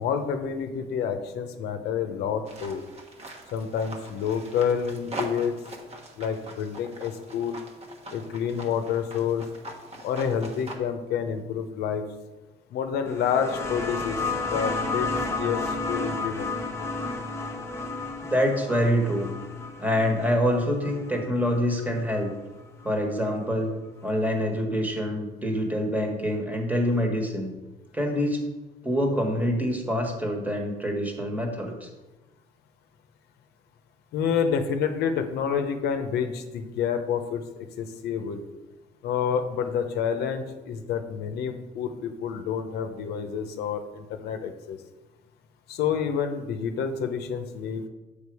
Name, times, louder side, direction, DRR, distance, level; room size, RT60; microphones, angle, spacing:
voice 1, 0.0-2.9 3.5-5.6 6.2-7.6 8.1-9.4 10.0-12.0 12.7-14.2 14.5-15.1 15.3-16.5 34.1-37.4 37.8-38.4 39.0-44.8 45.7-47.8, left 7 dB, 75° left, 7 dB, 0.8 m, -28 dB
sound 1, 2.4-10.8, right 2 dB, 40° right, 1.2 m, -41 dB
sound 2, 13.1-22.3 23.5-23.6, left 3 dB, 15° left, 1.0 m, -32 dB
voice 2, 18.2-19.3 19.8-22.3 22.8-23.7 24.0-27.5 27.9-28.4 28.8-31.9, equal, 10° right, 2 dB, 1.4 m, -26 dB
7.0 x 5.0 x 4.8 m, 1.1 s
cardioid pair, 110°, 17 cm